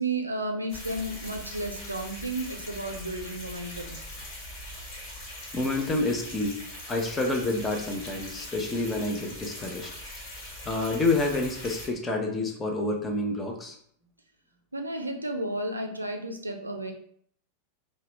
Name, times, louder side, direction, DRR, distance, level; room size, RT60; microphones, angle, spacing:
voice 1, 0.0-4.1 14.7-16.9, right 2 dB, 85° right, 3 dB, 0.4 m, -32 dB
sound 1, 0.7-11.9, left 1 dB, 40° left, 1.4 m, -41 dB
voice 2, 5.5-6.6 6.9-9.9 10.6-13.8, left 2 dB, 15° left, 1 dB, 0.6 m, -28 dB
2.7 x 2.1 x 3.1 m, 0.63 s
figure-of-eight pair, 90°, 0 cm